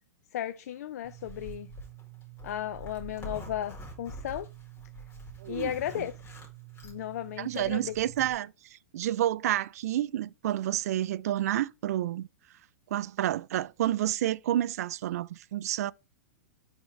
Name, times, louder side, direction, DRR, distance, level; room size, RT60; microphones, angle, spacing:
voice 1, 0.3-1.7 2.4-4.5 5.5-6.1 6.8-8.0, left 11 dB, 70° left, 0.4 m, -35 dB
Zipper (clothing), 1.0-8.3, right 3 dB, 25° left, 2.1 m, -45 dB
voice 2, 5.4-6.0 7.4-12.3 12.9-15.9, right 12 dB, 70° right, 0.3 m, -30 dB
9.4 x 3.6 x 3.1 m
supercardioid pair, 150°, 9 cm